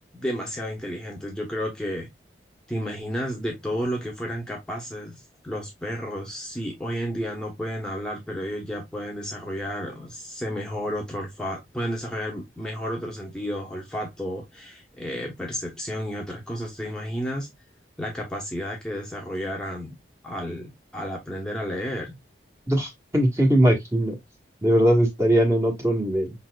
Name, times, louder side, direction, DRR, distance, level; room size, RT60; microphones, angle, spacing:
voice 1, 0.1-2.1 2.7-17.5 18.0-19.9 20.2-22.2, equal, 5° left, 1.1 m, -32 dB
voice 2, 22.7-24.1 24.6-26.3, right 1 dB, 15° right, 1.4 m, -20 dB
5.6 x 4.1 x 2.3 m
head